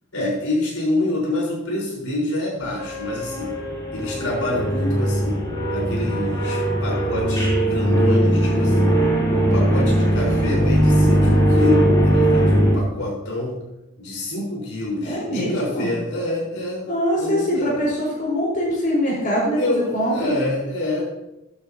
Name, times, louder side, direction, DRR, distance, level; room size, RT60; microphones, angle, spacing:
voice 1, 0.1-3.5 3.9-5.4 5.7-8.9 9.2-13.5 14.0-16.9 17.2-17.7 19.6-21.1, left 2 dB, 85° left, -4 dB, 4.5 m, -27 dB
sound 1, 2.6-12.7, right 1 dB, 20° left, 3.6 m, -19 dB
voice 2, 5.7-6.0 15.0-15.9 16.9-20.3, equal, 40° left, -5 dB, 4.3 m, -23 dB
13.0 x 9.8 x 2.9 m, 0.93 s
head